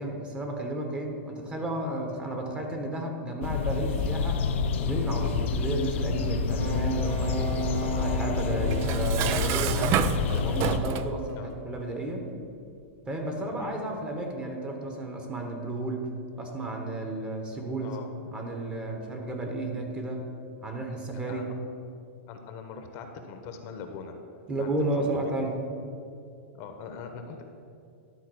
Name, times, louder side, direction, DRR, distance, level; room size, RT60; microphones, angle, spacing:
voice 1, 0.0-4.4 4.8-10.2 10.4-12.3 13.1-16.1 16.4-18.0 18.3-20.3 20.6-21.5 24.5-25.6, right 2 dB, 15° right, 2 dB, 1.2 m, -32 dB
sound 1, 3.4-10.8, left 5 dB, 70° left, 0.7 m, -28 dB
sound 2, 6.6-10.3 10.8-11.2, right 3 dB, 75° right, 1.3 m, -36 dB
Dishes pots and pans, 8.7-11.2, right 10 dB, 40° right, 0.4 m, -29 dB
voice 2, 17.8-18.3 21.3-21.5 22.3-24.1 24.8-25.4 26.6-27.4, left 5 dB, 45° left, 5 dB, 1.0 m, -41 dB
11.5 x 4.0 x 6.3 m, 2.5 s
hypercardioid pair, 125°, 7 cm